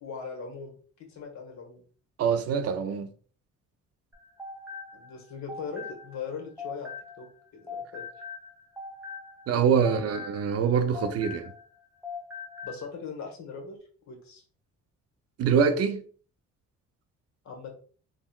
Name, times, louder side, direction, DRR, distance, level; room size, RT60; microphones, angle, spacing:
voice 1, 0.0-0.7 1.1-1.8 4.9-6.9 7.2-8.0 9.8-10.1 12.6-13.8 14.1-14.4 17.4-17.7, left 5 dB, 65° left, 1.1 m, -40 dB
voice 2, 2.2-3.1 9.5-11.5 15.4-16.0, right 6 dB, 55° right, 0.4 m, -24 dB
sound 1, 4.1-7.4 7.7-11.8 12.0-12.9, left 4 dB, 5° right, 0.6 m, -41 dB
3.7 x 2.1 x 2.3 m
cardioid pair, 90°, 30 cm